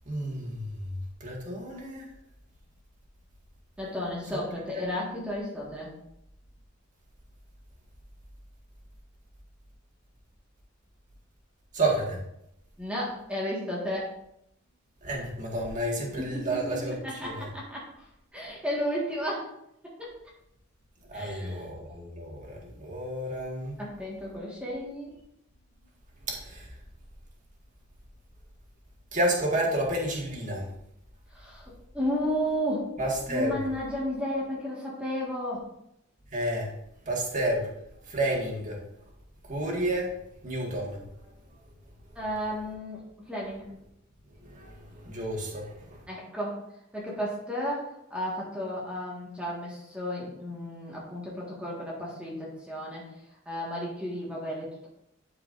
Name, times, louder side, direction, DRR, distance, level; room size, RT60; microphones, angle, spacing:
voice 1, 0.0-2.1 4.7-4.8 11.7-12.2 15.0-17.5 21.1-23.8 26.2-26.7 29.1-30.7 33.0-33.6 36.3-36.7 37.0-37.7 38.1-38.8 39.4-41.0 44.4-46.0, right 1 dB, 40° right, -2 dB, 1.8 m, -31 dB
voice 2, 3.8-5.9 12.8-14.1 16.3-18.0 18.3-19.6 19.8-20.2 21.1-21.6 23.8-25.1 31.3-33.0 33.3-35.7 42.1-43.7 46.1-46.6 46.9-53.1 53.4-54.9, equal, 5° right, -5 dB, 1.6 m, -33 dB
12.0 x 4.8 x 2.6 m, 0.77 s
head